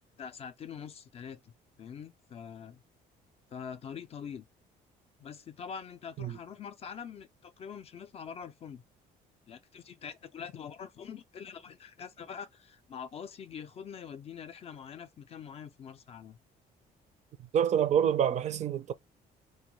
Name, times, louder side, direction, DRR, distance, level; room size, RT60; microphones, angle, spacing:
voice 1, 0.2-2.8 3.5-4.4 5.2-8.8 9.5-16.4, left 7 dB, 35° left, 0.3 m, -44 dB
voice 2, 17.5-18.9, right 9 dB, 45° right, 0.4 m, -27 dB
2.2 x 2.2 x 2.9 m
cardioid pair, 110°, 17 cm